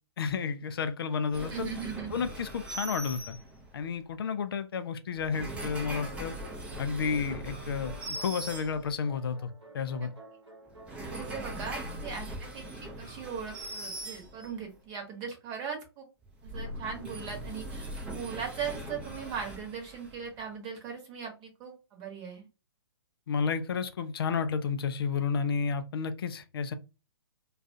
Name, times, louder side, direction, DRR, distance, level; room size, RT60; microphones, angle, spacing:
voice 1, 0.2-1.7 2.1-3.4 3.7-6.3 6.8-9.5 9.7-10.1 23.3-26.7, left 6 dB, 60° left, 0.4 m, -31 dB
sound 1, 1.3-3.9 5.1-9.2 10.7-14.7 16.2-20.4, right 1 dB, 10° right, 0.5 m, -41 dB
voice 2, 1.5-2.1 10.0-10.1 10.9-16.1 16.4-22.5, right 6 dB, 25° right, 1.0 m, -39 dB
sound 2, 5.7-11.9, right 2 dB, 85° right, 0.8 m, -51 dB
2.3 x 2.3 x 2.5 m
figure-of-eight pair, 125°, 14 cm